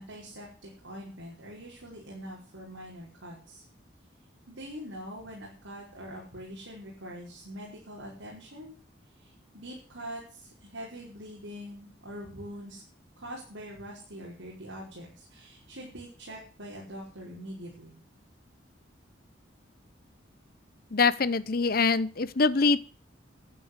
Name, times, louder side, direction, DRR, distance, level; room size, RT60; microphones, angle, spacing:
voice 1, 0.0-3.6 4.5-8.8 9.2-12.8 13.2-18.0, equal, 85° right, -4 dB, 5.4 m, -43 dB
voice 2, 20.9-22.8, left 4 dB, 50° left, 16 dB, 0.8 m, -24 dB
11.5 x 9.4 x 8.2 m, 0.40 s
head